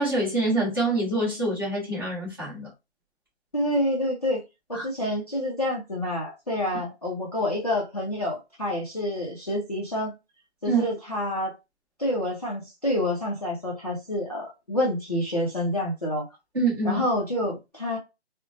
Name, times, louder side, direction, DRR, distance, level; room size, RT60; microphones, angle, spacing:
voice 1, 0.0-2.7 4.7-4.8 10.7-10.8 16.5-17.0, right 2 dB, 20° right, 1.1 m, -25 dB
voice 2, 3.5-4.4 4.8-10.1 10.6-11.5 12.0-16.3 16.8-18.0, left 1 dB, 35° left, 0.4 m, -28 dB
2.6 x 2.1 x 2.5 m
hypercardioid pair, 175°, 34 cm